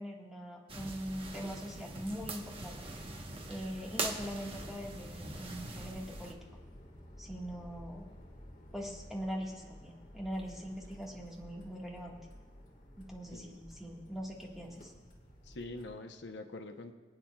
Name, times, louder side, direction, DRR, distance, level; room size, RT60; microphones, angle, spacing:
voice 1, 0.0-2.9 3.5-6.4 7.2-8.1 8.7-12.1 13.0-14.9, equal, ahead, -3 dB, 1.6 m, -42 dB
sound 1, 0.7-6.3, right 2 dB, 30° right, 1.1 m, -42 dB
sound 2, 1.0-16.0, equal, 50° left, 1.7 m, -54 dB
voice 2, 15.4-16.9, left 2 dB, 80° left, 6 dB, 0.8 m, -44 dB
26.0 x 8.8 x 2.3 m, 1.4 s
head